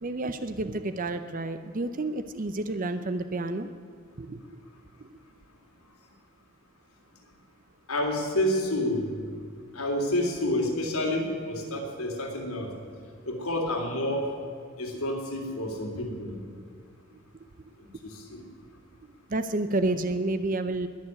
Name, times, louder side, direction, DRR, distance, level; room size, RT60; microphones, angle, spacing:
voice 1, 0.0-3.7 4.2-4.6 5.0-5.1 14.9-15.0 17.1-17.7 19.0-20.9, right 2 dB, 40° right, 10 dB, 0.6 m, -31 dB
voice 2, 7.9-9.1 9.7-12.7 13.3-14.3 14.8-16.4 18.0-18.4, left 1 dB, 80° left, 1 dB, 3.3 m, -29 dB
21.0 x 7.1 x 9.6 m, 2.2 s
head